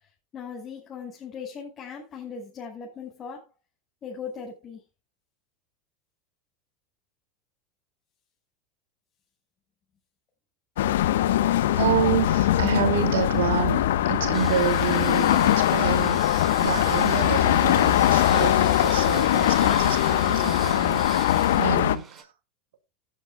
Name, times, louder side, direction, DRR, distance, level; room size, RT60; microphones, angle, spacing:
voice 1, 0.3-3.4 4.0-4.8, left 6 dB, 35° left, 5.5 m, -38 dB
sound 1, 10.8-22.0, left 13 dB, 80° left, 1.1 m, -21 dB
voice 2, 11.6-22.3, right 9 dB, 80° right, 2.6 m, -29 dB
sound 2, 14.3-22.2, right 5 dB, 25° right, 5.1 m, -39 dB
17.5 x 9.7 x 2.3 m
hypercardioid pair, 100°, 0 cm